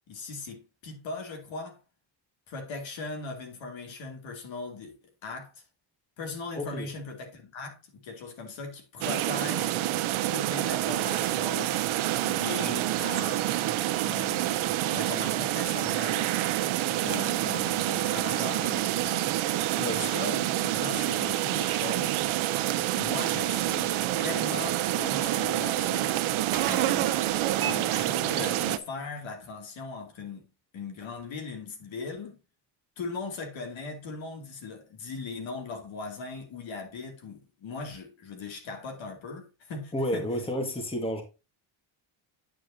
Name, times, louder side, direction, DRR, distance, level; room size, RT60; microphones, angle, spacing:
voice 1, 0.1-1.8 2.5-4.9 5.2-5.6 6.2-9.8 10.3-11.8 12.2-13.5 14.0-16.3 16.9-19.4 19.9-22.2 23.0-26.1 26.6-27.2 27.6-30.4 30.7-32.4 33.0-40.3, left 4 dB, 65° left, 2.9 m, -39 dB
voice 2, 6.5-6.9 19.8-20.0 39.9-41.2, equal, 10° left, 1.8 m, -31 dB
sound 1, 9.0-28.8, right 14 dB, 75° right, 0.8 m, -27 dB
sound 2, 23.1-28.3, right 8 dB, 45° right, 1.5 m, -41 dB
9.0 x 7.6 x 2.8 m
cardioid pair, 140°, 49 cm